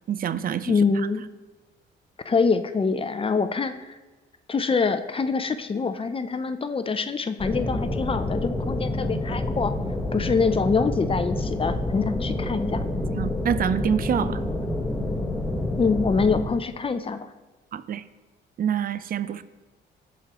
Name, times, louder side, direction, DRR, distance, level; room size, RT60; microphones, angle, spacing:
voice 1, 0.1-0.7 13.1-14.4 17.7-18.0 18.6-19.4, right 9 dB, 45° right, 14 dB, 0.5 m, -26 dB
voice 2, 0.7-1.2 2.3-4.0 4.5-9.7 10.1-12.8 15.8-17.3, left 4 dB, 30° left, 10 dB, 0.5 m, -25 dB
sound 1, 7.4-16.4, left 1 dB, 5° left, 1.3 m, -28 dB
14.5 x 5.0 x 3.0 m, 1.2 s
cardioid pair, 90°, 20 cm